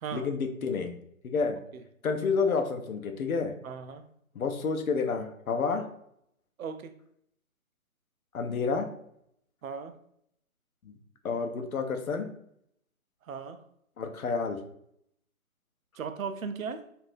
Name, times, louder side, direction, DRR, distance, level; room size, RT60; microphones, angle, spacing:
voice 1, 0.1-0.9 1.2-1.6 2.0-3.5 4.3-5.8 8.3-8.9 10.8-11.0 11.2-12.3 14.0-14.6, left 5 dB, 80° left, 0.7 m, -29 dB
voice 2, 3.6-4.0 6.6-6.9 9.6-10.0 13.3-13.6 16.0-16.9, right 6 dB, 75° right, 0.5 m, -37 dB
3.3 x 2.6 x 2.5 m
hypercardioid pair, 165°, 42 cm